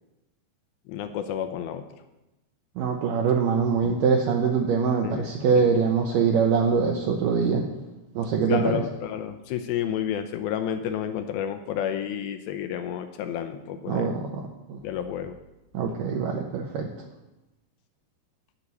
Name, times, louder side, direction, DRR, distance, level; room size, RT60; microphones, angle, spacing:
voice 1, 0.9-1.8 3.8-4.0 5.0-5.7 8.5-14.2 14.8-15.4, left 9 dB, 80° left, 7 dB, 2.3 m, -31 dB
voice 2, 2.8-7.6 8.2-8.8 13.9-14.8 15.7-16.9, right 6 dB, 75° right, 1 dB, 2.1 m, -23 dB
11.5 x 8.1 x 4.1 m, 0.99 s
omnidirectional pair, 4.5 m